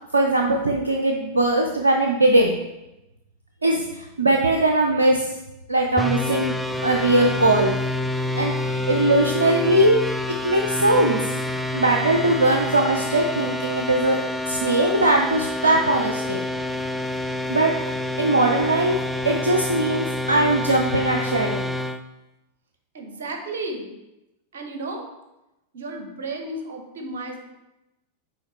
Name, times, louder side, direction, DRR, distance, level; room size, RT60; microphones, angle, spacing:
voice 1, 0.1-2.5 3.6-3.9 4.2-5.3 5.7-6.5 6.8-7.8 8.3-10.0 10.4-11.2 11.7-14.2 14.5-16.4 17.5-17.7 18.2-19.0 19.2-21.6, right 2 dB, 75° right, 2 dB, 0.5 m, -20 dB
sound 1, 6.0-22.0, left 1 dB, 5° right, 0.3 m, -27 dB
voice 2, 22.9-23.9 24.5-25.0 25.7-27.4, right 2 dB, 60° right, 4 dB, 1.0 m, -33 dB
5.6 x 4.4 x 4.2 m, 0.96 s
figure-of-eight pair, 90°, 0 cm